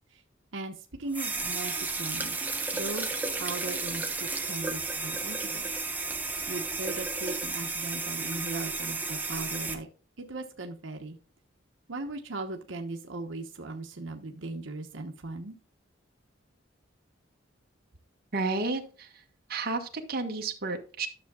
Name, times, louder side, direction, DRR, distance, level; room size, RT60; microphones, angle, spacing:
voice 1, 0.5-5.7 6.5-9.9 10.2-11.2 11.9-15.6, right 2 dB, 85° right, 3 dB, 1.1 m, -38 dB
sound 1, 1.1-9.8, right 3 dB, 10° right, 1.2 m, -33 dB
voice 2, 18.3-19.1 19.5-21.1, right 3 dB, 55° right, 3 dB, 1.5 m, -31 dB
12.5 x 7.0 x 2.4 m, 0.39 s
head